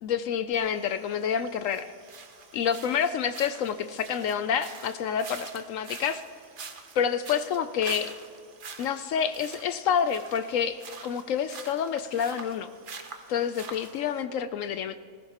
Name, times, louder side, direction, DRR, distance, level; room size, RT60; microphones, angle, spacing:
voice 1, 0.0-1.9 2.5-6.2 7.0-8.2 8.8-12.7 13.3-15.0, left 7 dB, 70° left, 11 dB, 0.8 m, -28 dB
sound 1, 0.5-14.2, right 5 dB, 40° right, 0.9 m, -46 dB
19.5 x 14.5 x 2.9 m, 2.2 s
omnidirectional pair, 1.6 m